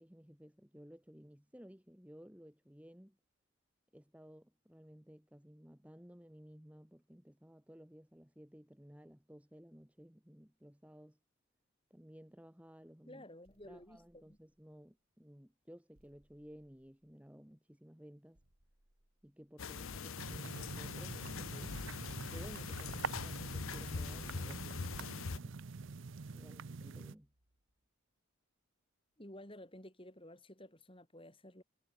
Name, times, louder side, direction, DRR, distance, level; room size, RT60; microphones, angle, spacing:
voice 1, 0.0-3.2 3.9-11.2 11.9-13.2 13.6-18.4 19.2-21.8 22.3-25.6 26.3-27.3, equal, 5° right, 1.2 m, -56 dB
voice 2, 13.1-14.4 29.2-31.6, left 1 dB, 25° left, 5.8 m, -53 dB
sound 1, 13.4-14.9 15.9-17.6 18.3-19.7 20.5-22.1 22.6-27.9, right 1 dB, 85° right, 4.6 m, -73 dB
sound 2, 19.6-25.4, left 5 dB, 65° left, 0.8 m, -43 dB
sound 3, 20.2-27.2, right 4 dB, 55° right, 0.6 m, -45 dB
head